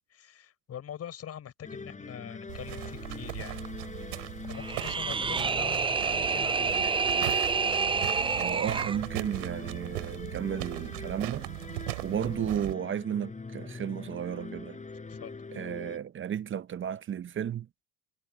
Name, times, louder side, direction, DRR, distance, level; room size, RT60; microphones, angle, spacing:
voice 1, 0.1-3.6 4.5-6.9 15.1-15.4, left 9 dB, 50° left, 6.7 m, -43 dB
sound 1, 1.6-16.0, left 4 dB, 25° left, 7.9 m, -43 dB
sound 2, 2.5-12.7, right 29 dB, 85° right, 3.4 m, -39 dB
sound 3, 4.5-9.0, right 5 dB, 15° right, 0.5 m, -28 dB
voice 2, 8.3-11.5 12.0-14.8 15.5-17.7, right 9 dB, 40° right, 0.9 m, -33 dB
supercardioid pair, 75°, 32 cm